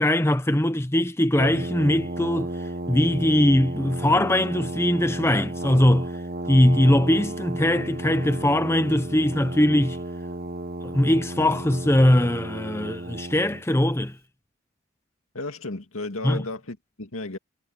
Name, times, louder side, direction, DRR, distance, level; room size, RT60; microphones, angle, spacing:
voice 1, 0.0-2.5 2.9-6.1 6.5-10.0 10.8-14.2 16.2-16.4, left 1 dB, 10° left, 0.7 m, -21 dB
Brass instrument, 1.4-13.6, right 2 dB, 45° right, 1.1 m, -33 dB
voice 2, 15.3-17.4, left 2 dB, 80° left, 2.3 m, -33 dB
head